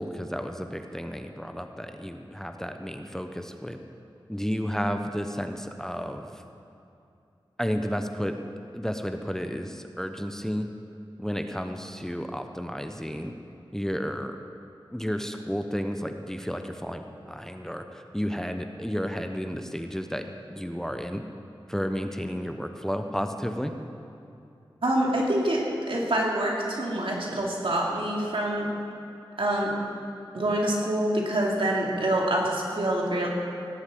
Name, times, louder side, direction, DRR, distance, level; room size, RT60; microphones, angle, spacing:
voice 1, 0.0-3.8 4.3-6.4 7.6-8.3 8.7-10.7 11.2-13.3 13.7-14.4 14.9-21.2 21.7-23.7, equal, 5° left, 6 dB, 0.9 m, -32 dB
voice 2, 24.8-25.6 25.9-28.7 29.4-29.7 30.3-33.3, right 1 dB, 75° right, -2 dB, 2.6 m, -26 dB
17.0 x 8.1 x 7.6 m, 2.7 s
wide cardioid pair, 55°, 9 cm